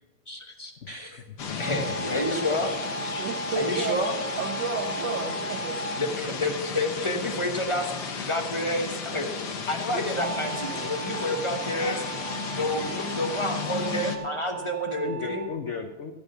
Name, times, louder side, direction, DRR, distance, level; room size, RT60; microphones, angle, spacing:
voice 1, 0.3-0.7 1.6-2.7 3.6-4.1 6.0-9.3 9.7-12.0 12.5-15.5, left 1 dB, 25° left, 4 dB, 0.6 m, -29 dB
voice 2, 0.8-2.6 15.0-16.1, left 5 dB, 80° left, 6 dB, 0.6 m, -37 dB
sound 1, 1.4-14.2, left 5 dB, 55° left, 1.8 m, -34 dB
sound 2, 1.6-6.1 10.2-15.5, right 4 dB, 90° right, 0.5 m, -37 dB
voice 3, 3.2-5.8 9.9-10.0, right 4 dB, 65° right, 2 dB, 1.6 m, -32 dB
15.0 x 6.2 x 7.0 m, 1.1 s
omnidirectional pair, 2.4 m